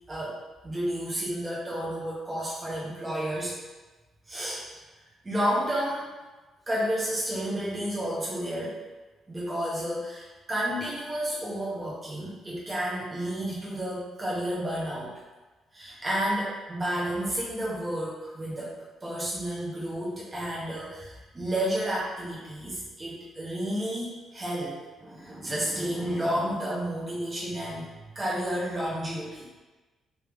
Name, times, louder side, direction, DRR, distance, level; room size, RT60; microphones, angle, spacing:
voice 1, 0.6-3.5 4.3-4.6 5.2-6.1 6.7-8.8 9.3-15.1 15.7-27.9 28.1-29.5, equal, 25° right, -7 dB, 0.9 m, -31 dB
3.1 x 2.8 x 3.5 m, 1.2 s
cardioid pair, 90°, 0 cm